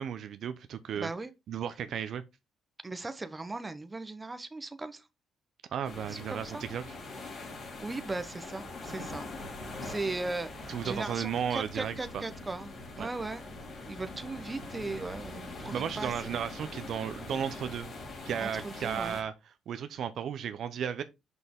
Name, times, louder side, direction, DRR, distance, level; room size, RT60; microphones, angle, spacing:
voice 1, 0.0-1.1 1.5-2.2 5.7-7.0 10.7-12.2 13.0-13.1 15.7-17.9 18.3-19.3 19.7-21.0, right 8 dB, 70° right, 0.7 m, -34 dB
voice 2, 1.0-1.3 2.8-5.0 6.1-6.6 7.8-9.3 9.8-13.4 13.9-16.1 18.4-19.2, right 3 dB, 20° right, 0.9 m, -38 dB
sound 1, 5.8-19.2, left 2 dB, 50° left, 2.8 m, -43 dB
6.2 x 5.5 x 3.6 m
cardioid pair, 90°, 0 cm